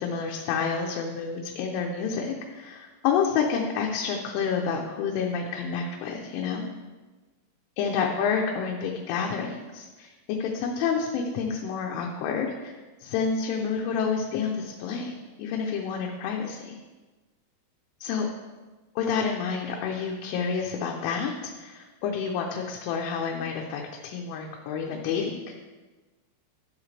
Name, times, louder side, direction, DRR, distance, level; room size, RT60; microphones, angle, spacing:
voice 1, 0.0-6.6 7.8-10.1 10.4-12.7 13.0-16.8 18.0-18.3 19.0-21.3 21.6-25.4, left 6 dB, 90° left, 0 dB, 3.2 m, -29 dB
11.0 x 7.3 x 3.3 m, 1.2 s
omnidirectional pair, 5.4 m